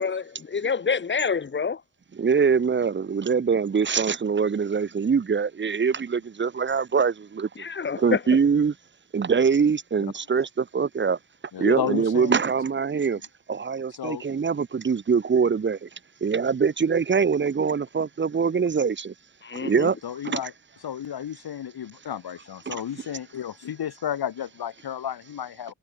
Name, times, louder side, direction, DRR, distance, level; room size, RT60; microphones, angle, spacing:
voice 1, 0.0-1.8 7.5-8.4 11.6-12.0 19.4-19.9, left 5 dB, 30° left, 0.9 m, -27 dB
voice 2, 2.2-7.5 8.0-8.7 9.1-11.2 11.6-13.2 13.5-15.9 16.2-19.1 19.6-20.0 20.2-20.4 22.7-22.8, right 6 dB, 30° right, 0.8 m, -23 dB
voice 3, 11.5-12.4 13.9-14.2 20.0-20.5 20.8-25.7, left 9 dB, 85° left, 4.4 m, -32 dB
cardioid pair, 105°, 37 cm